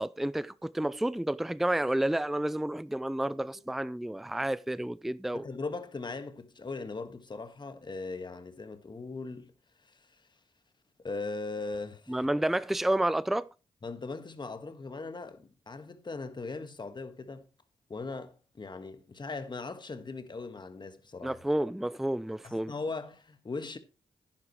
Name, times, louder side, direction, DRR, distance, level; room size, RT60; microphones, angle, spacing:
voice 1, 0.0-5.4 12.1-13.5 21.2-22.7, right 1 dB, ahead, 0.4 m, -30 dB
voice 2, 5.3-9.5 9.8-10.3 11.0-12.2 13.8-17.5 17.9-21.4 22.4-23.8, left 3 dB, 35° left, 1.6 m, -39 dB
11.0 x 10.0 x 3.1 m
supercardioid pair, 45°, 13 cm